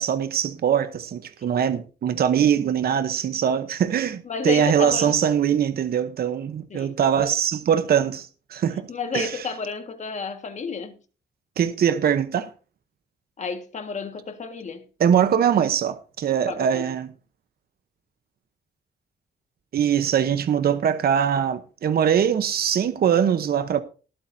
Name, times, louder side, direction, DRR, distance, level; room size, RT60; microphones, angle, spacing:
voice 1, 0.0-8.9 9.1-9.5 11.6-12.5 15.0-17.1 19.7-23.8, right 8 dB, 60° right, 0.9 m, -22 dB
voice 2, 4.3-5.4 6.7-6.9 8.9-11.0 13.4-14.8 16.5-16.9, left 5 dB, 40° left, 1.7 m, -31 dB
19.5 x 8.7 x 2.7 m
wide cardioid pair, 145°, 18 cm